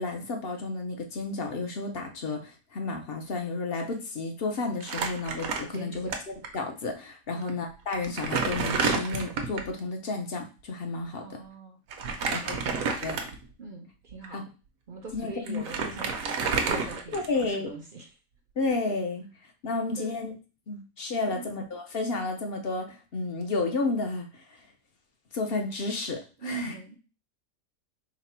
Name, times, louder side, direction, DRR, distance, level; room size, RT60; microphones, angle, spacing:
voice 1, 0.0-6.1 6.5-11.2 12.3-12.6 13.0-13.2 14.3-14.4 15.1-15.6 17.1-17.7 18.6-19.3 19.6-20.3 20.7-24.4 25.3-26.2 26.5-26.7, left 3 dB, 55° left, 3 dB, 0.8 m, -31 dB
Crumpling crinkling, 4.8-6.2 6.4-6.6 7.4-7.5 7.9-9.7 11.9-13.5 14.1-14.3 15.1-15.2 15.5-17.6, right 5 dB, 75° right, 1.1 m, -30 dB
voice 2, 5.7-6.2 7.3-7.6 11.2-12.5 13.6-14.4 14.9-18.1 19.8-20.2 21.3-21.5 26.4-27.0, right 4 dB, 55° right, 2 dB, 0.6 m, -42 dB
4.1 x 2.1 x 4.2 m, 0.33 s
omnidirectional pair, 1.5 m